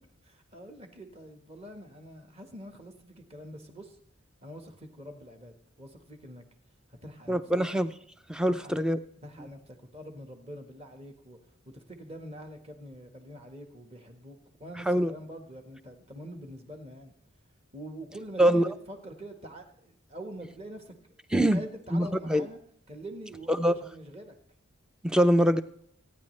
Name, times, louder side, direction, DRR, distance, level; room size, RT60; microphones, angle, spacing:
voice 1, 0.2-4.0 4.4-6.4 7.0-7.4 8.5-8.8 9.2-11.4 11.6-17.1 17.7-20.9 21.3-22.6 22.9-24.3, right 1 dB, 30° right, 5 dB, 1.4 m, -45 dB
voice 2, 7.3-7.9 8.3-9.0 14.9-15.1 18.4-18.7 21.3-21.6 21.9-22.4 23.6-23.8 25.0-25.6, right 1 dB, 5° right, 11 dB, 0.4 m, -23 dB
24.5 x 9.6 x 3.2 m, 0.72 s
head